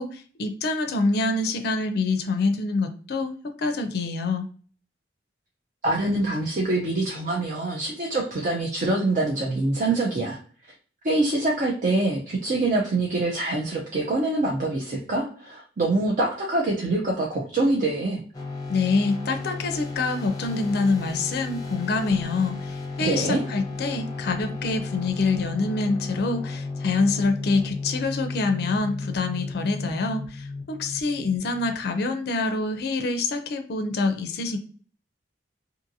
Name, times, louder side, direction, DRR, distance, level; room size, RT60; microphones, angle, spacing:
voice 1, 0.0-4.5 18.7-34.6, left 3 dB, 60° left, 7 dB, 0.4 m, -26 dB
voice 2, 5.8-10.4 11.0-18.2 23.0-23.4, right 2 dB, 45° right, -1 dB, 0.5 m, -25 dB
sound 1, 18.3-31.9, left 3 dB, 20° left, 0.7 m, -34 dB
2.6 x 2.6 x 2.6 m, 0.43 s
head